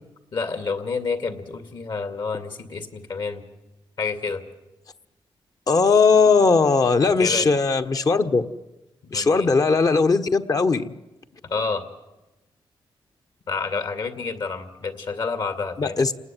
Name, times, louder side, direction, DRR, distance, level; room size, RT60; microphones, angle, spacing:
voice 1, 0.3-3.4 4.0-4.4 7.2-7.6 9.1-9.5 11.5-11.8 13.5-16.0, left 4 dB, 60° left, 9 dB, 2.4 m, -29 dB
voice 2, 5.7-8.5 9.1-10.9 15.8-16.1, left 4 dB, 40° left, 7 dB, 1.2 m, -19 dB
28.5 x 19.5 x 9.2 m, 1.0 s
cardioid pair, 100°, 9 cm